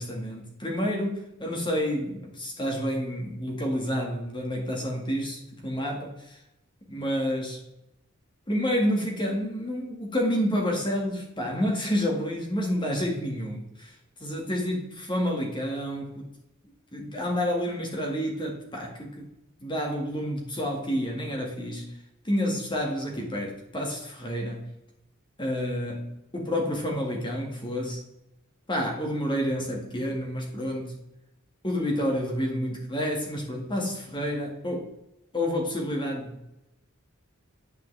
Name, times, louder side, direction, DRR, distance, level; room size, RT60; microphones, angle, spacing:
voice 1, 0.0-6.1 6.9-7.6 8.5-13.9 14.2-16.3 16.9-19.3 19.6-22.0 22.2-24.7 25.4-28.0 28.7-31.0 31.6-34.9 35.3-36.5, equal, 20° left, 0 dB, 1.8 m, -29 dB
9.7 x 5.3 x 3.3 m, 0.86 s
head